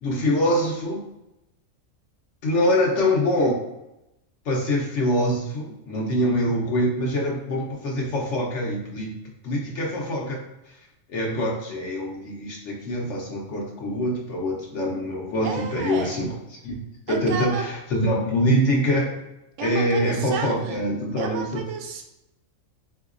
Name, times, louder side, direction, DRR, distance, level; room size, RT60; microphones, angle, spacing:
voice 1, 0.0-1.0 2.4-3.5 4.4-9.1 9.4-10.4 10.7-10.8 11.1-16.3 16.6-16.8 17.1-19.1 19.6-21.6, equal, 70° left, -1 dB, 1.0 m, -24 dB
voice 2, 15.4-16.3 17.1-17.6 19.6-20.8 21.2-22.0, right 5 dB, 70° right, 4 dB, 0.9 m, -31 dB
3.8 x 2.7 x 2.4 m, 0.91 s
omnidirectional pair, 1.3 m